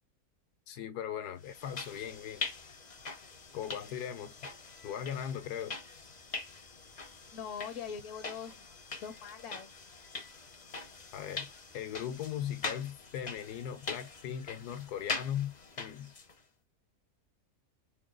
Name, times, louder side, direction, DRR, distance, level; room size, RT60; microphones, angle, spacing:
voice 1, 0.7-2.4 3.5-4.4 4.8-5.8 11.1-11.5 11.7-16.1, left 9 dB, 80° left, 1.2 m, -38 dB
sound 1, 1.4-16.4, left 4 dB, 40° left, 0.6 m, -43 dB
voice 2, 7.3-8.6 9.0-9.7, left 7 dB, 60° left, 0.9 m, -42 dB
3.8 x 2.2 x 3.7 m
omnidirectional pair, 1.7 m